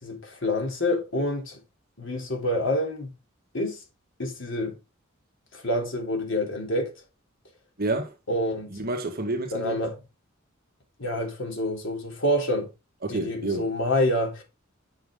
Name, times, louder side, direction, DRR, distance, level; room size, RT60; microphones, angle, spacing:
voice 1, 0.0-1.6 2.0-3.1 3.5-3.8 4.2-4.7 5.5-6.9 8.3-8.7 9.5-10.0 11.0-12.7 13.1-14.4, left 1 dB, 65° left, 3.3 m, -27 dB
voice 2, 7.8-8.1 8.7-9.7 13.0-13.7, right 2 dB, 45° right, 1.6 m, -29 dB
9.4 x 6.4 x 3.7 m
head